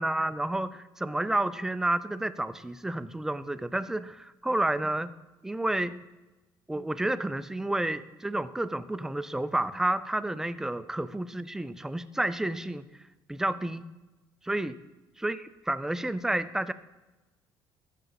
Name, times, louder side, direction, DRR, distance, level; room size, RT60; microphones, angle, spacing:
voice 1, 0.0-5.2 5.4-6.0 6.7-12.8 13.3-13.9 14.4-14.8 15.2-16.7, right 1 dB, 5° right, 13 dB, 0.4 m, -30 dB
13.5 x 5.2 x 3.9 m, 1.1 s
cardioid pair, 115°, 9 cm